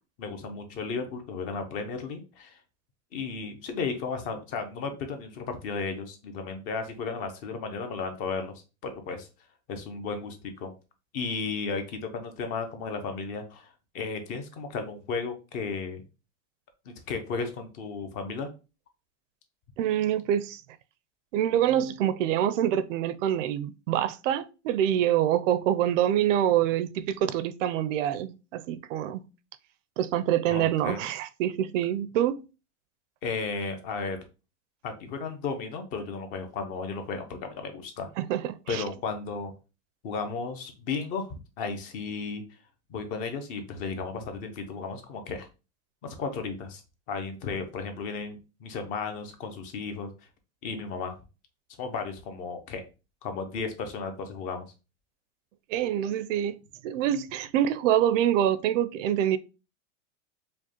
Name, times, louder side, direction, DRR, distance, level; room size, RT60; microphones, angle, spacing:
voice 1, 0.2-2.6 3.1-8.5 8.8-9.3 9.7-10.7 11.1-13.7 13.9-16.0 16.9-18.5 30.5-31.0 33.2-34.2 34.8-38.1 38.7-39.5 40.0-42.4 42.9-45.5 46.0-46.8 47.1-50.1 50.6-51.1 51.8-52.8 53.2-54.7, left 4 dB, 25° left, 0.3 m, -34 dB
voice 2, 19.8-20.6 21.3-29.3 30.0-32.4 38.2-38.8 55.7-56.6 56.8-59.4, right 11 dB, 85° right, 0.5 m, -26 dB
5.0 x 2.1 x 2.8 m
supercardioid pair, 160°, 37 cm